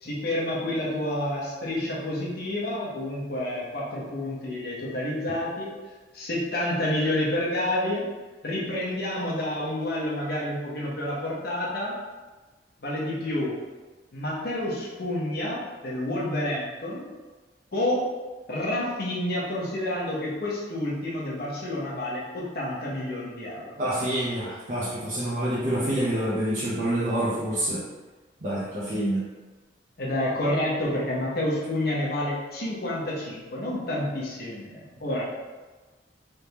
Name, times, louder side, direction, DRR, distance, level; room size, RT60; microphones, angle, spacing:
voice 1, 0.0-5.7 6.1-8.1 8.4-12.0 12.8-13.6 14.1-17.1 17.7-18.1 18.5-23.8 30.0-35.3, left 1 dB, 60° left, -5 dB, 0.9 m, -29 dB
voice 2, 23.8-27.8 28.4-29.2, right 1 dB, 45° right, -8 dB, 0.7 m, -27 dB
3.4 x 3.4 x 2.9 m, 1.2 s
head